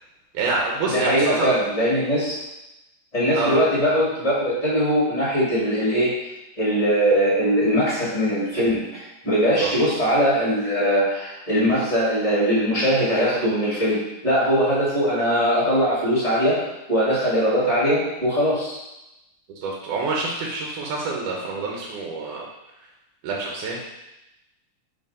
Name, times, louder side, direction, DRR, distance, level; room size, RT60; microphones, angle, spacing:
voice 1, 0.3-1.6 3.3-3.6 9.6-9.7 19.6-22.5 23.2-23.8, right 3 dB, 70° right, -2 dB, 2.2 m, -27 dB
voice 2, 0.9-2.4 3.1-6.1 6.6-16.6 16.9-18.8, equal, 20° left, -9 dB, 1.0 m, -21 dB
5.0 x 3.9 x 5.3 m, 0.92 s
omnidirectional pair, 3.9 m